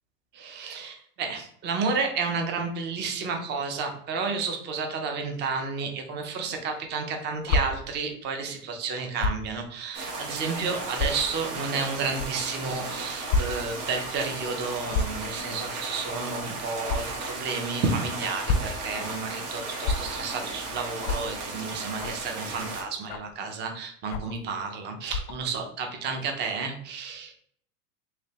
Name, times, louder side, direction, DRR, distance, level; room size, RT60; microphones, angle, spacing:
voice 1, 0.3-27.3, right 4 dB, 25° right, 4 dB, 0.5 m, -31 dB
sound 1, 7.4-7.6 9.2-9.4 10.2-10.3 10.9-11.1 12.1-12.3 13.3-13.4 13.7-13.9 14.9-15.2 16.8-17.0 18.2-18.7 19.8-20.0 21.0-21.2 22.0-22.2 23.1-23.3 24.1-24.4 25.1-25.3, left 3 dB, 60° left, 0.5 m, -27 dB
sound 2, 9.9-22.8, right 3 dB, 65° right, 1.5 m, -35 dB
3.3 x 3.2 x 2.8 m, 0.65 s
supercardioid pair, 130°, 48 cm